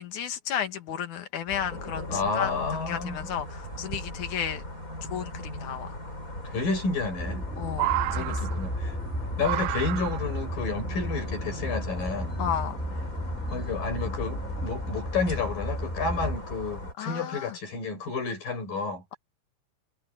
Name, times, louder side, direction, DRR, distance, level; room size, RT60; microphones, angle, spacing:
voice 1, 0.0-4.6 5.1-6.0 7.6-8.4 12.4-12.8 17.0-17.6, left 9 dB, 65° left, 2.9 m, -33 dB
sound 1, 1.5-16.9, left 1 dB, 20° left, 8.3 m, -38 dB
voice 2, 2.1-3.3 6.4-7.5 8.1-9.0 9.4-12.4 13.5-19.0, left 4 dB, 85° left, 8.2 m, -31 dB
sound 2, 2.4-2.5 2.8-2.9 3.5-4.0 5.6-5.7 6.9-7.4 7.7-8.9 9.4-10.4 11.4-11.5, right 17 dB, 80° right, 2.1 m, -31 dB
sound 3, 7.2-16.4, equal, 5° left, 1.7 m, -34 dB
omnidirectional pair, 3.9 m